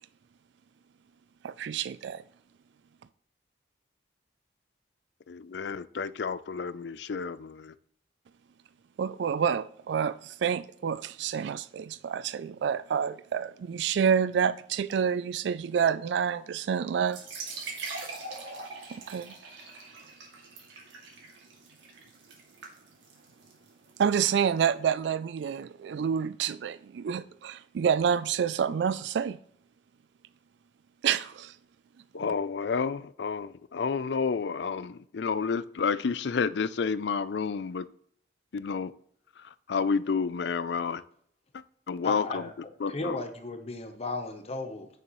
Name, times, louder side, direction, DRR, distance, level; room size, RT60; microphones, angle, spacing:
voice 1, 1.4-2.2 9.0-17.2 19.1-19.3 24.0-29.4 31.0-31.5, right 7 dB, 70° right, 0.3 m, -28 dB
voice 2, 5.3-7.7 32.1-37.9 38.5-38.9 39.7-41.0 41.9-42.4 42.8-43.2, left 5 dB, 65° left, 0.4 m, -30 dB
sound 1, 17.0-24.6, right 3 dB, 85° right, 2.3 m, -43 dB
voice 3, 42.0-44.9, left 2 dB, 35° left, 0.8 m, -35 dB
8.8 x 6.7 x 3.1 m
head